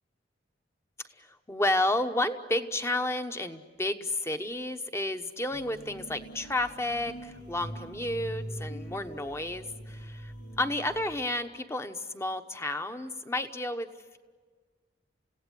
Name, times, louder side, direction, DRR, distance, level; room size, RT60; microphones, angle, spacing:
voice 1, 1.2-13.9, left 1 dB, 15° left, 8 dB, 1.0 m, -31 dB
sound 1, 5.5-11.2, equal, 55° left, 7.4 m, -43 dB
30.0 x 17.0 x 9.9 m, 1.5 s
head